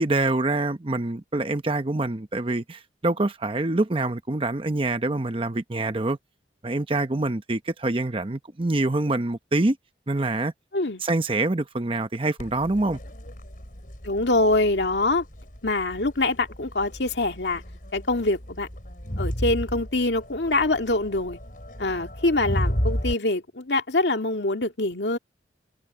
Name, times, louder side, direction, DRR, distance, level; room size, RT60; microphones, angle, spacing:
voice 1, 0.0-6.2 6.6-9.8 10.1-10.5 11.0-13.0, right 2 dB, 30° right, 0.8 m, -25 dB
Crowd, 12.4-23.1, equal, 50° left, 6.3 m, -33 dB
voice 2, 14.0-15.2 15.6-17.6 17.9-18.7 19.2-21.4 21.8-25.2, left 2 dB, 75° left, 2.1 m, -24 dB
head